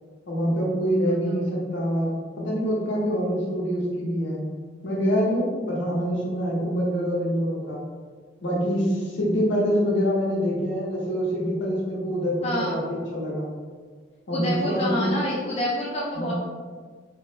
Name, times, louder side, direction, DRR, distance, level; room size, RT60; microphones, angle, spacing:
voice 1, 0.3-2.1 2.4-4.4 4.8-7.8 8.4-13.5 14.3-15.1 16.1-16.3, equal, 70° left, -4 dB, 0.8 m, -25 dB
voice 2, 12.4-12.8 14.3-16.3, left 1 dB, 35° left, -5 dB, 0.4 m, -27 dB
3.1 x 2.1 x 3.1 m, 1.5 s
head